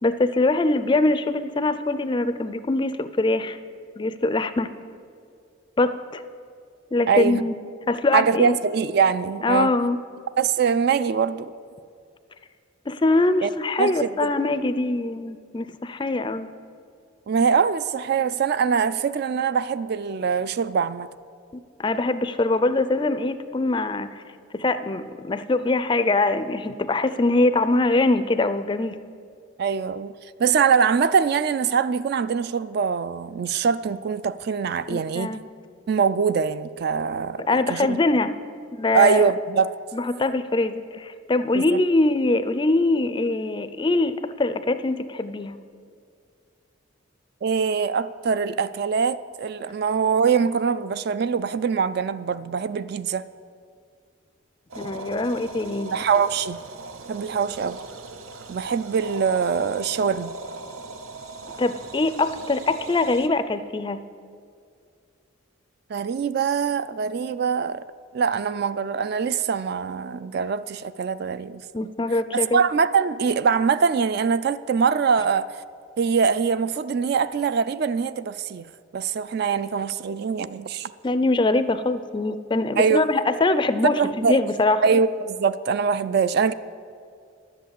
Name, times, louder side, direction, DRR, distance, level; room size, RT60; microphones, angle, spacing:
voice 1, 0.0-3.6 4.0-4.7 5.8-6.2 6.9-7.5 7.9-8.5 9.4-10.0 12.9-16.5 21.5-24.1 24.5-29.0 34.9-35.4 37.5-38.3 38.7-39.3 39.9-45.6 54.8-55.9 61.6-64.0 71.7-72.6 81.0-84.8, left 2 dB, 25° left, 0.4 m, -23 dB
voice 2, 7.1-7.4 8.1-9.7 10.4-11.5 13.4-13.5 13.8-14.3 17.3-21.1 29.6-30.1 30.4-35.3 35.9-38.0 38.9-39.7 41.5-41.8 47.4-53.3 55.8-56.6 57.1-57.8 58.5-60.3 65.9-67.8 68.1-71.6 72.3-75.5 76.0-78.7 78.9-80.9 82.8-83.0 83.8-84.4 84.8-86.5, right 6 dB, 50° right, 0.3 m, -23 dB
sound 1, 54.7-63.3, right 3 dB, 90° right, 0.7 m, -39 dB
11.0 x 7.9 x 8.2 m
head